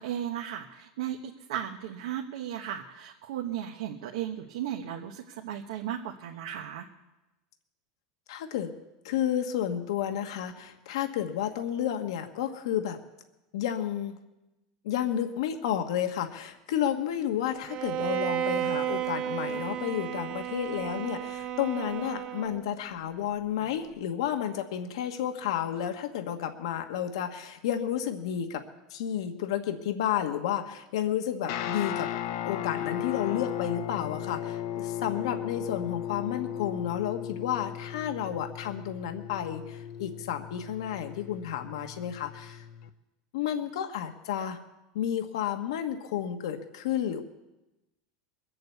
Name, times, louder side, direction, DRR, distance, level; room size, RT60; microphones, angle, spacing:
voice 1, 0.0-6.9, right 10 dB, 80° right, 1 dB, 1.2 m, -35 dB
voice 2, 8.3-8.7 9.0-13.0 13.5-14.2 14.8-28.6 28.9-32.1 32.4-42.6 43.3-44.6 44.9-47.2, left 10 dB, 80° left, 6 dB, 1.3 m, -31 dB
Bowed string instrument, 17.7-22.8, right 11 dB, 30° right, 0.5 m, -33 dB
Guitar, 31.4-42.9, left 10 dB, 50° left, 0.8 m, -36 dB
22.0 x 7.8 x 8.1 m, 1.0 s
supercardioid pair, 165°, 3 cm